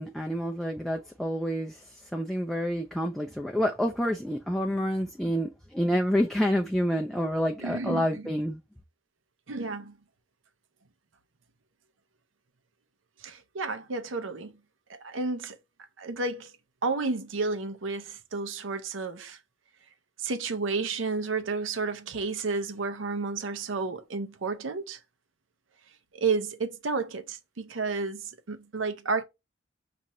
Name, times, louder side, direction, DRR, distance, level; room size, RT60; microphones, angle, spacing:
voice 1, 0.0-8.6, equal, ahead, 0.4 m, -28 dB
voice 2, 7.6-8.1 9.5-10.0 13.2-14.6 14.9-15.6 16.0-16.5 16.8-19.4 20.2-25.0 26.1-29.2, right 4 dB, 85° right, 0.7 m, -31 dB
5.4 x 2.5 x 2.9 m
head